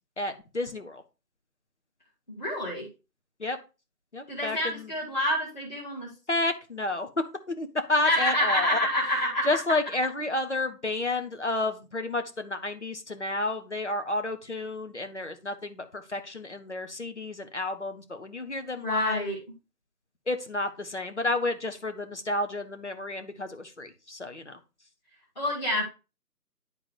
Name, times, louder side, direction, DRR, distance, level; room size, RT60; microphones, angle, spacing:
voice 1, 0.2-1.0 3.4-3.6 4.1-4.9 6.3-8.8 9.4-19.2 20.3-24.6, left 2 dB, 45° left, 6 dB, 1.1 m, -31 dB
voice 2, 2.3-2.9 4.3-6.1 8.0-9.5 18.8-19.4 25.3-25.8, left 1 dB, 25° left, -6 dB, 1.7 m, -27 dB
10.5 x 3.7 x 4.8 m, 0.30 s
figure-of-eight pair, 175°, 49 cm